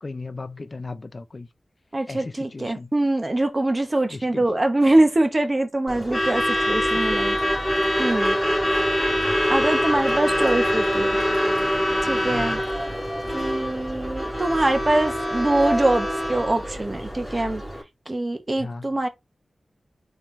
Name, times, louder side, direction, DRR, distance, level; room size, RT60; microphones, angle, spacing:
voice 1, 0.0-1.5 2.1-2.9 4.1-4.5 12.2-12.6 18.6-18.9, left 3 dB, 45° left, 0.4 m, -36 dB
voice 2, 1.9-7.4 8.0-8.4 9.5-11.1 12.1-12.6 13.3-17.6 18.1-19.1, right 2 dB, 30° right, 0.8 m, -23 dB
Truck / Alarm, 5.9-17.8, equal, ahead, 2.5 m, -24 dB
4.3 x 3.7 x 3.2 m
wide cardioid pair, 80°, 0 cm